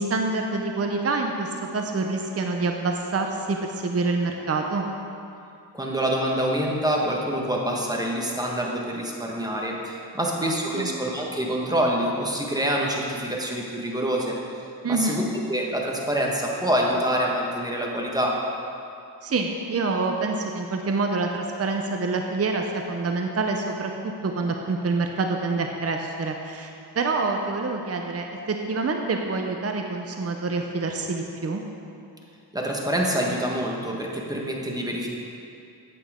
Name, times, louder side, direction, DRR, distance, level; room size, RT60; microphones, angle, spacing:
voice 1, 0.0-4.9 10.4-10.9 14.8-15.2 19.2-23.9 24.2-31.6, right 3 dB, 35° right, 3 dB, 0.8 m, -27 dB
voice 2, 5.7-14.4 14.9-15.2 15.5-18.4 32.5-35.1, equal, 10° right, -2 dB, 1.5 m, -26 dB
8.6 x 8.5 x 3.7 m, 2.6 s
cardioid pair, 50°, 42 cm